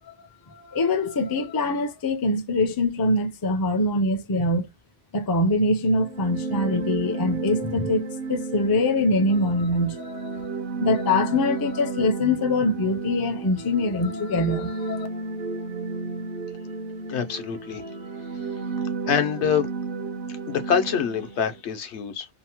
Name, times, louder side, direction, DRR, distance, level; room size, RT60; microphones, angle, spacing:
voice 1, 0.5-4.7 5.1-10.4 10.8-15.1, left 2 dB, 35° left, 0.4 m, -24 dB
sound 1, 5.9-21.6, right 4 dB, 60° right, 0.7 m, -32 dB
voice 2, 17.1-17.8 19.1-19.7 20.5-22.3, left 7 dB, 80° left, 0.9 m, -25 dB
2.8 x 2.1 x 2.8 m
omnidirectional pair, 1.1 m